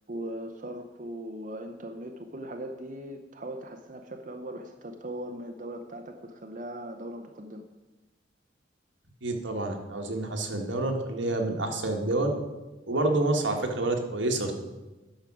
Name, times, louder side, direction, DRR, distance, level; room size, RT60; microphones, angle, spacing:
voice 1, 0.1-7.7, right 1 dB, 45° right, 5 dB, 0.7 m, -39 dB
voice 2, 9.2-12.3 12.9-14.5, right 2 dB, 85° right, 3 dB, 1.6 m, -28 dB
10.5 x 6.6 x 6.1 m, 1.1 s
head